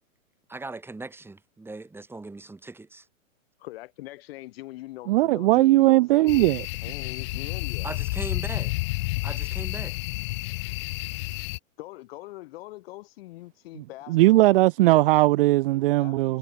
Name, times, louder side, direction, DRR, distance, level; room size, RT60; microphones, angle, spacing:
voice 1, 0.5-3.1 7.8-8.7 9.2-10.0, right 3 dB, 5° right, 7.0 m, -39 dB
voice 2, 3.6-6.5 6.8-7.9 11.8-14.6 16.0-16.4, left 18 dB, 45° left, 2.0 m, -42 dB
voice 3, 5.1-6.6 13.8-16.4, right 18 dB, 40° right, 1.1 m, -19 dB
sound 1, 6.3-11.6, left 23 dB, 20° left, 0.5 m, -30 dB
hypercardioid pair, 150°, 41 cm